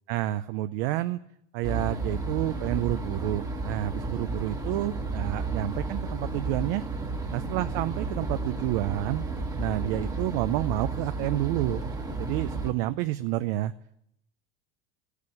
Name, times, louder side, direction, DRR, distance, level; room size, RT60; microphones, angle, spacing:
voice 1, 0.1-1.2 1.5-6.8 7.3-9.2 9.6-11.8 12.2-13.7, right 15 dB, 65° right, 12 dB, 0.6 m, -29 dB
sound 1, 1.6-12.7, right 3 dB, 10° right, 1.3 m, -32 dB
15.5 x 8.3 x 9.9 m, 0.76 s
cardioid pair, 160°, 30 cm